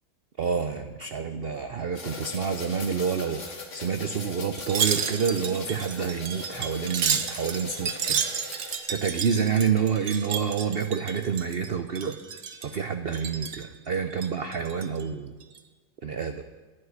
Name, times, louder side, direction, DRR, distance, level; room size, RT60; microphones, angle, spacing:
voice 1, 0.4-3.4 3.7-8.2 8.9-12.2 12.6-15.3 16.0-16.4, right 6 dB, 75° right, 8 dB, 0.5 m, -28 dB
sound 1, 1.9-8.8, left 3 dB, 45° left, 1.9 m, -40 dB
Wind chime, 4.6-11.7 12.0-12.8 13.1-13.7 14.1-15.0 15.4-15.6, right 7 dB, 50° right, 0.9 m, -31 dB
11.0 x 9.8 x 9.5 m, 1.3 s
omnidirectional pair, 1.9 m